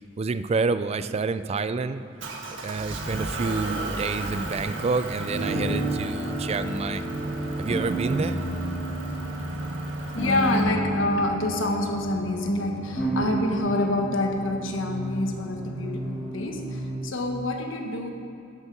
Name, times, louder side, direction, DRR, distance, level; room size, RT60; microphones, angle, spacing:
voice 1, 0.2-2.0 2.6-7.0 7.6-8.4, right 4 dB, 30° right, 13 dB, 0.3 m, -28 dB
Motor vehicle (road) / Engine, 2.2-10.6, right 2 dB, 75° right, 1.5 m, -35 dB
sound 1, 5.3-17.0, right 1 dB, 5° left, 1.9 m, -31 dB
voice 2, 10.1-18.1, left 2 dB, 80° left, 4 dB, 1.2 m, -27 dB
11.0 x 8.0 x 6.0 m, 2.6 s
head